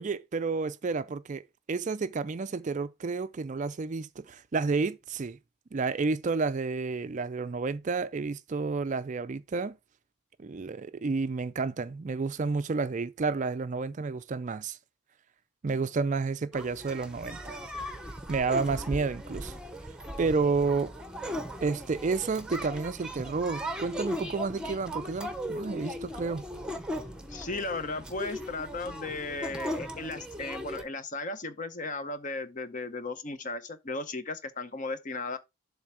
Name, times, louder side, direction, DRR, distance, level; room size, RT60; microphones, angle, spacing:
voice 1, 0.0-1.4 1.7-5.4 5.7-9.8 10.4-14.8 15.6-17.6 18.3-19.6 20.2-20.9 21.6-26.4, right 4 dB, 35° right, 0.4 m, -30 dB
sound 1, 16.5-30.8, equal, 5° right, 0.9 m, -38 dB
voice 2, 27.3-35.4, left 3 dB, 35° left, 0.8 m, -36 dB
7.6 x 3.3 x 6.1 m
head